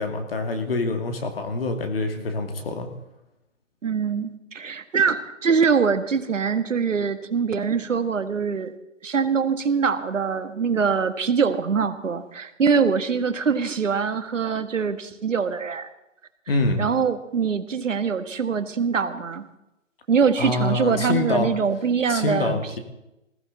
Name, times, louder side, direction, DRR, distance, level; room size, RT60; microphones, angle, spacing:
voice 1, 0.0-2.9 16.5-16.8 20.4-21.5 22.1-22.8, left 3 dB, 50° left, 5 dB, 2.3 m, -25 dB
voice 2, 3.8-8.7 9.0-15.9 16.8-19.4 20.1-22.8, right 6 dB, 75° right, 10 dB, 1.6 m, -23 dB
20.0 x 14.5 x 4.1 m, 0.91 s
hypercardioid pair, 165°, 39 cm